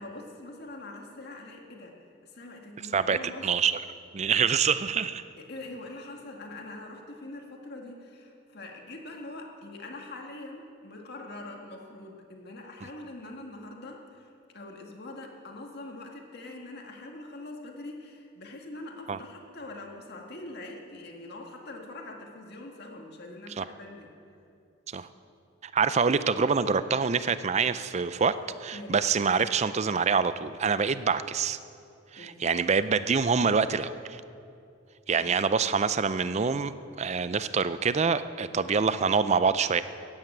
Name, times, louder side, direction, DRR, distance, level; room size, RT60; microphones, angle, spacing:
voice 1, 0.0-2.0 2.2-3.5 5.4-14.3 14.5-24.1 28.7-29.0 32.2-32.6 35.2-35.4, left 2 dB, 55° left, 1 dB, 1.9 m, -43 dB
voice 2, 2.9-3.7 4.1-5.2 19.1-19.2 23.6-23.7 24.9-25.1 25.6-28.4 28.6-31.6 32.1-34.2 35.1-36.7 37.0-39.8, right 5 dB, 35° right, 13 dB, 0.4 m, -25 dB
14.5 x 9.2 x 8.9 m, 2.6 s
head